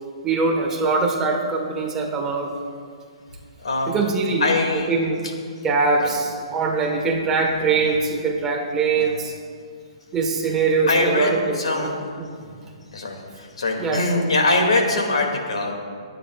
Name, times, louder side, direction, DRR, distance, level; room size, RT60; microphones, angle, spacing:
voice 1, 0.2-2.5 3.9-5.2 5.6-9.3 10.1-12.3 13.8-14.0, right 4 dB, 15° right, 1 dB, 1.5 m, -22 dB
voice 2, 3.6-4.0 4.4-4.9 6.0-6.1 7.8-7.9 8.9-9.0 10.9-12.0 12.5-12.6 12.9-15.7, left 2 dB, 85° left, 1 dB, 2.5 m, -22 dB
24.5 x 9.2 x 2.5 m, 2.1 s
hypercardioid pair, 140°, 3 cm